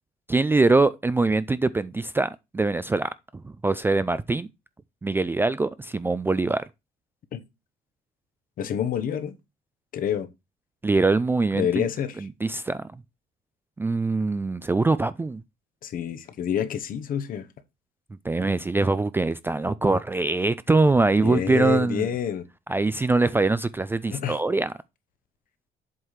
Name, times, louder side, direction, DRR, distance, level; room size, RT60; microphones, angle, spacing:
voice 1, 0.3-4.5 5.0-6.6 10.8-11.8 12.2-12.9 13.8-15.4 18.2-22.1 22.7-24.7, right 3 dB, 15° right, 0.3 m, -23 dB
voice 2, 8.6-9.4 9.9-10.3 11.5-12.3 15.8-17.5 21.2-22.5 24.1-24.4, left 9 dB, 55° left, 1.0 m, -28 dB
7.8 x 3.2 x 5.6 m
cardioid pair, 110°, 17 cm